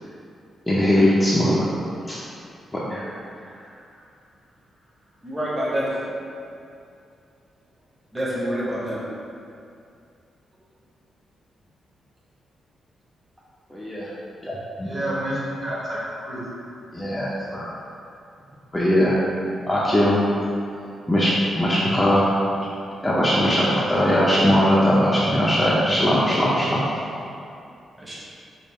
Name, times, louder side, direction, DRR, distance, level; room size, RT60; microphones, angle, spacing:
voice 1, 0.7-1.5 2.1-2.2 2.9-3.0 13.7-14.1 14.4-14.9 16.9-17.6 18.7-19.1 19.7-20.2 21.1-22.2 23.0-26.8, equal, 10° left, -8 dB, 0.5 m, -20 dB
voice 2, 3.3-3.8 14.8-16.4, right 1 dB, 30° right, -8 dB, 1.2 m, -30 dB
voice 3, 5.2-5.9 8.1-9.0 28.0-28.2, equal, 10° right, -8 dB, 1.0 m, -27 dB
5.2 x 2.4 x 4.1 m, 2.5 s
wide cardioid pair, 170°, 0 cm